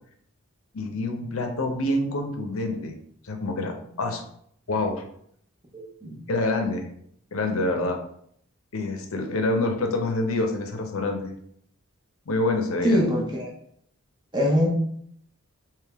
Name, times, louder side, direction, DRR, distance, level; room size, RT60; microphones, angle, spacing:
voice 1, 0.7-3.0 3.2-4.2 4.7-5.0 6.3-6.9 7.3-8.0 8.7-11.3 12.3-13.0, left 2 dB, 75° left, 5 dB, 0.6 m, -26 dB
voice 2, 5.7-6.2 12.8-13.5 14.3-14.7, equal, 20° right, -2 dB, 0.7 m, -23 dB
3.4 x 3.0 x 3.4 m, 0.67 s
head